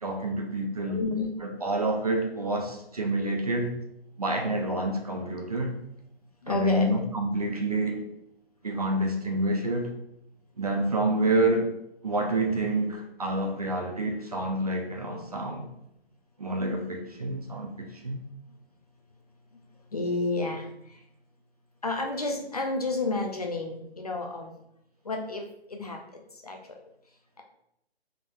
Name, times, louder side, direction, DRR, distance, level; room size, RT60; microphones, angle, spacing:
voice 1, 0.0-1.0 1.4-3.8 4.2-5.8 6.5-8.1 8.6-9.9 10.6-11.7 12.0-15.7 16.4-18.2, right 1 dB, 35° right, 0.4 m, -28 dB
voice 2, 0.8-1.3 6.4-6.9 19.9-20.7 21.8-24.5 25.0-26.0 26.4-26.8, left 2 dB, 35° left, 0.4 m, -30 dB
4.9 x 3.6 x 2.3 m
figure-of-eight pair, 150°, 32 cm